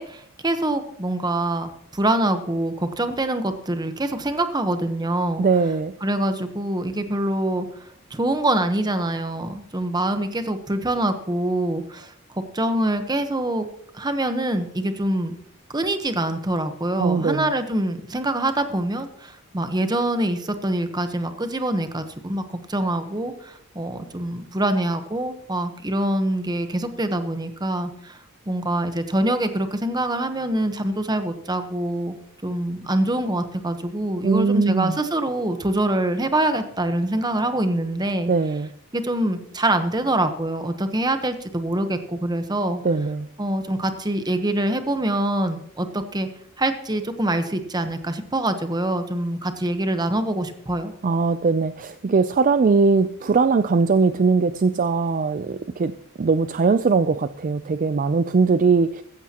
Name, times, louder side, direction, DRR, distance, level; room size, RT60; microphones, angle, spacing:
voice 1, 0.0-5.4 6.0-7.7 8.1-12.1 12.5-13.7 13.9-15.3 15.7-28.2 28.5-32.2 32.4-38.3 38.9-42.8 43.4-46.3 46.6-50.9, right 1 dB, 20° right, 8 dB, 1.0 m, -25 dB
voice 2, 5.4-5.9 17.0-17.5 34.2-35.0 38.3-38.7 42.8-43.3 51.0-55.9 56.2-59.0, right 4 dB, 40° right, 12 dB, 0.4 m, -20 dB
15.0 x 14.5 x 2.9 m, 0.70 s
head